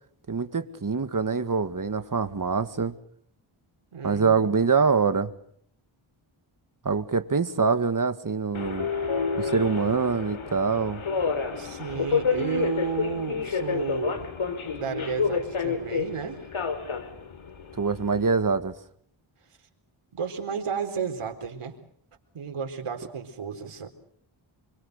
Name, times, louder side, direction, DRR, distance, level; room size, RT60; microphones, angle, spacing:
voice 1, 0.3-2.9 4.0-5.3 6.8-8.9 9.4-11.0 17.8-18.7, right 5 dB, 40° right, 2.0 m, -24 dB
voice 2, 3.9-4.5 11.5-14.3 14.7-16.5 20.1-21.8 22.3-23.9, right 6 dB, 80° right, 4.2 m, -32 dB
Subway metro underground, 8.5-18.3, left 5 dB, 70° left, 3.6 m, -29 dB
26.5 x 25.0 x 6.7 m
wide cardioid pair, 80°, 50 cm